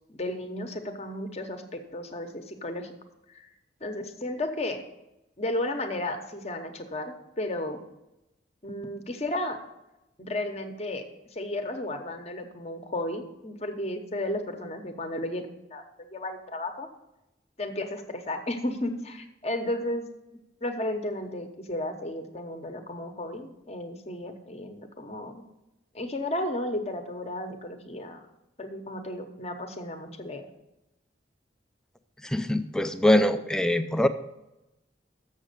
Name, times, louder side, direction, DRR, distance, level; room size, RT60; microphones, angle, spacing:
voice 1, 0.1-2.9 3.3-3.5 3.8-4.8 5.4-7.8 8.6-9.6 10.2-11.0 11.3-15.8 16.1-16.9 17.6-20.1 20.6-25.4 25.9-28.2 28.6-30.4, left 1 dB, 35° left, 6 dB, 0.9 m, -33 dB
voice 2, 32.2-34.1, left 1 dB, 5° left, 9 dB, 0.4 m, -23 dB
7.3 x 6.4 x 6.6 m, 0.93 s
head